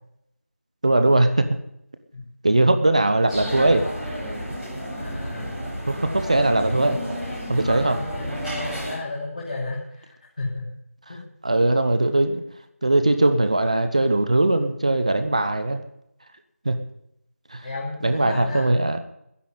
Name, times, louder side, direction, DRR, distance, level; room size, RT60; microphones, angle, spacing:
voice 1, 0.8-1.5 2.4-3.8 5.9-7.0 7.5-8.0 11.1-11.2 11.4-12.4 12.8-15.8 16.6-16.8 17.5-17.7 18.0-19.0, right 2 dB, 30° right, 9 dB, 0.8 m, -20 dB
sound 1, 3.3-8.9, equal, ahead, 2.5 m, -31 dB
voice 2, 5.0-5.5 7.8-10.7 11.1-11.2 17.6-18.7, left 2 dB, 35° left, -6 dB, 3.0 m, -33 dB
11.0 x 10.5 x 9.2 m, 0.76 s
figure-of-eight pair, 175°, 8 cm